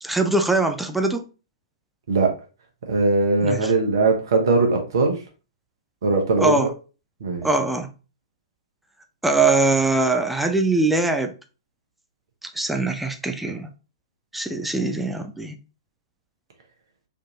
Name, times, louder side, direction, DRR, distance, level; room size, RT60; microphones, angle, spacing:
voice 1, 0.0-1.2 3.4-3.7 6.4-6.7 7.4-7.9 9.2-11.3 12.6-13.7 14.3-15.5, right 3 dB, 5° right, 0.4 m, -22 dB
voice 2, 2.9-5.2 6.0-6.7 7.2-7.5, right 3 dB, 60° right, 1.0 m, -20 dB
3.5 x 2.6 x 2.8 m
figure-of-eight pair, 105°, 3 cm